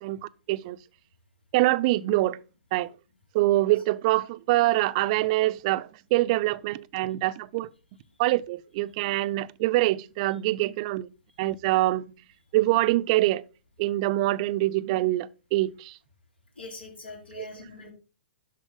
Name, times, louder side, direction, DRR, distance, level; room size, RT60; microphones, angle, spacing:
voice 1, 0.0-0.8 1.5-2.4 2.7-2.9 3.3-7.7 8.2-11.1 11.4-12.0 12.5-13.4 13.8-16.0 17.4-17.6, right 17 dB, 40° right, 0.5 m, -25 dB
voice 2, 16.6-17.9, left 3 dB, 85° left, 4.2 m, -42 dB
12.0 x 4.4 x 3.9 m
hypercardioid pair, 120°, 6 cm